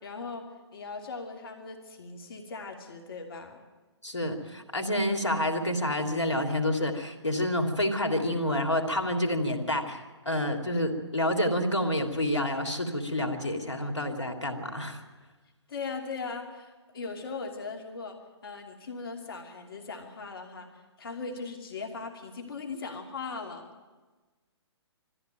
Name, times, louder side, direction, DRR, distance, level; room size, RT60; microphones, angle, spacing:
voice 1, 0.0-3.6 15.7-18.2 18.4-20.7 21.0-23.7, left 4 dB, 55° left, 4 dB, 2.8 m, -39 dB
voice 2, 4.0-15.0, left 1 dB, 90° left, 4 dB, 3.1 m, -28 dB
22.0 x 14.5 x 9.1 m, 1.3 s
figure-of-eight pair, 135°, 15 cm